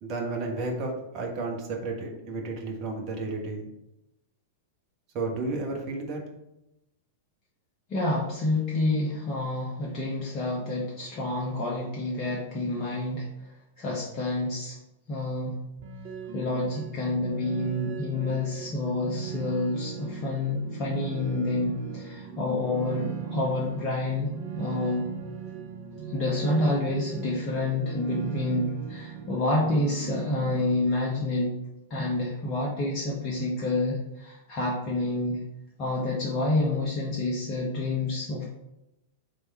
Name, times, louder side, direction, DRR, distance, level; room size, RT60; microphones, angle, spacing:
voice 1, 0.0-3.7 5.1-6.2, right 3 dB, 35° right, 1 dB, 1.1 m, -32 dB
voice 2, 7.9-13.3 13.8-14.8 15.1-15.6 16.3-24.3 24.6-25.1 26.1-31.5 31.9-35.4 35.8-38.4, left 2 dB, 35° left, -4 dB, 1.0 m, -28 dB
sound 1, 15.8-30.6, right 6 dB, 55° right, 0.8 m, -38 dB
3.4 x 3.4 x 4.1 m, 0.89 s
figure-of-eight pair, 95°, 0 cm